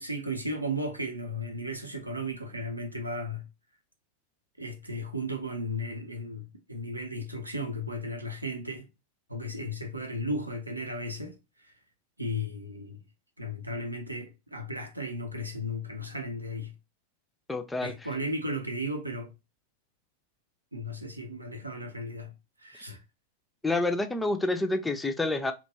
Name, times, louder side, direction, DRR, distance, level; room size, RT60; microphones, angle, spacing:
voice 1, 0.0-3.4 4.6-8.9 9.3-11.4 12.2-13.0 13.4-16.7 17.8-19.3 20.7-22.3 22.6-23.0, equal, 85° right, 0.5 m, -35 dB
voice 2, 17.5-17.9 23.6-25.5, left 2 dB, 10° left, 0.4 m, -28 dB
2.7 x 2.2 x 2.7 m
figure-of-eight pair, 90°, 0 cm